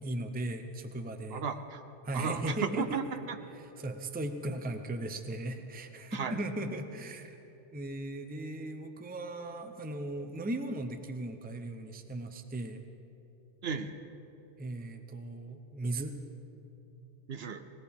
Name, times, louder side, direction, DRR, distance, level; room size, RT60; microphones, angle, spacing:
voice 1, 0.0-1.4 2.0-3.2 3.5-7.4 7.7-12.9 14.6-16.1, right 1 dB, 10° right, 7 dB, 0.6 m, -37 dB
voice 2, 1.3-1.8 2.1-3.4 6.1-6.3 13.6-14.0 17.3-17.6, right 6 dB, 65° right, 9 dB, 0.9 m, -34 dB
19.5 x 19.0 x 3.6 m, 3.0 s
omnidirectional pair, 1.2 m